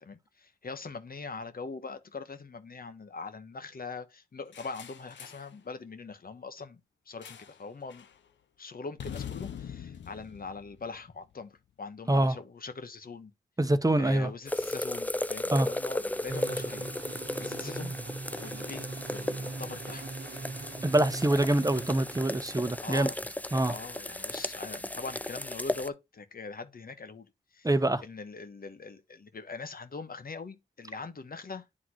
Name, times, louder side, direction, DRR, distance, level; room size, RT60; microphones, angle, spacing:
voice 1, 0.0-6.8 7.1-8.1 8.6-13.3 14.0-18.0 18.4-20.1 22.8-23.2 23.7-27.7 28.0-31.7, left 4 dB, 55° left, 1.1 m, -42 dB
sound 1, 4.5-5.5 7.2-7.6 7.9-8.2 9.0-11.3, left 8 dB, 85° left, 0.7 m, -43 dB
voice 2, 13.6-14.3 15.5-15.7 20.8-23.1 23.5-23.7 27.6-28.0, right 1 dB, 20° right, 1.0 m, -25 dB
sound 2, 14.5-25.9, left 1 dB, 10° left, 0.5 m, -35 dB
sound 3, 16.3-22.8, right 3 dB, 75° right, 1.2 m, -41 dB
9.8 x 3.8 x 3.1 m
cardioid pair, 45°, 18 cm